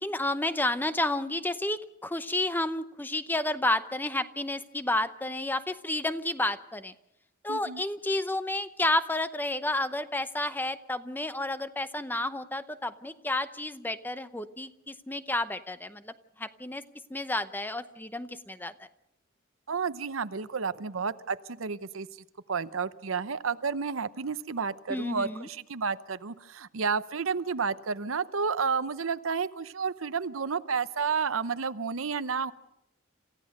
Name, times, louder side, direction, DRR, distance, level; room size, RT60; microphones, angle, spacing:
voice 1, 0.0-6.9 7.4-16.8 17.1-18.9 24.9-25.5, left 1 dB, 10° left, 12 dB, 0.7 m, -31 dB
voice 2, 7.5-7.8 19.7-22.1 22.5-32.5, right 5 dB, 80° right, 14 dB, 0.8 m, -31 dB
27.0 x 15.0 x 6.5 m, 0.83 s
head